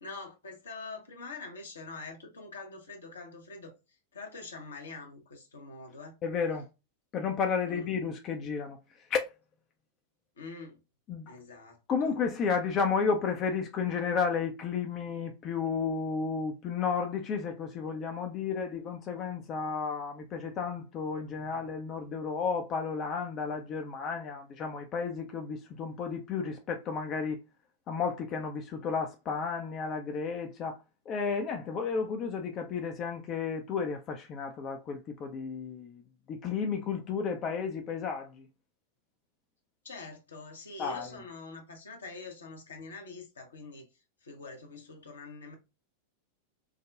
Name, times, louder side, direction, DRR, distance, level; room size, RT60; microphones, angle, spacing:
voice 1, 0.0-3.7 4.1-6.2 7.7-7.9 10.4-10.8 11.3-12.2 39.8-43.9 44.2-45.5, left 3 dB, 70° left, 0.9 m, -45 dB
voice 2, 6.2-6.7 7.1-8.8 9.1-9.3 11.1-11.3 11.9-27.4 27.9-36.0 36.3-38.5 40.8-41.1, left 5 dB, 30° left, 0.5 m, -32 dB
4.7 x 2.1 x 2.3 m
figure-of-eight pair, 90°, 0 cm